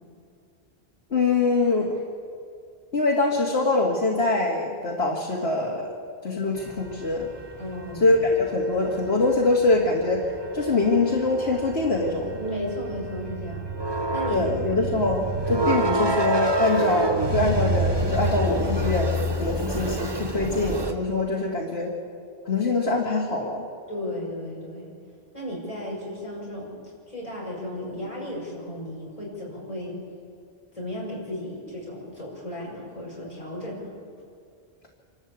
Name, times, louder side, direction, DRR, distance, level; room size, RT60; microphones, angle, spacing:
voice 1, 1.1-1.9 2.9-5.9 6.2-7.3 8.0-10.3 10.5-12.4 14.3-21.9 22.5-23.6, left 2 dB, 85° left, -2 dB, 2.3 m, -24 dB
sound 1, 6.7-20.9, right 1 dB, 25° right, 1.2 m, -28 dB
voice 2, 7.6-8.2 12.4-13.7 14.1-14.5 23.9-24.8 25.3-26.8 27.1-30.0 30.7-33.9, left 1 dB, 35° left, -4 dB, 5.8 m, -34 dB
26.5 x 13.0 x 8.3 m, 2.3 s
omnidirectional pair, 1.0 m